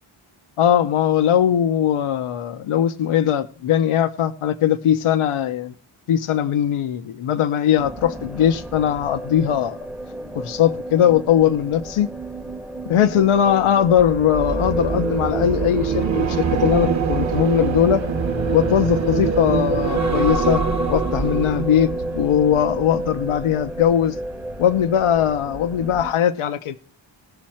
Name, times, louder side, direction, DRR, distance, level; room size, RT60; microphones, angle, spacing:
voice 1, 0.6-5.7 6.1-9.8 10.4-12.1 12.9-18.0 18.5-20.6 20.9-21.9 22.2-24.2 24.6-26.7, left 9 dB, 85° left, 0.8 m, -20 dB
sound 1, 7.8-26.1, right 1 dB, 5° right, 0.7 m, -31 dB
sound 2, 13.9-23.3 23.7-24.0, right 5 dB, 35° right, 0.8 m, -25 dB
Aircraft, 14.9-25.6 26.1-26.2, right 5 dB, 65° right, 0.9 m, -35 dB
18.0 x 6.3 x 4.3 m
wide cardioid pair, 95°, 49 cm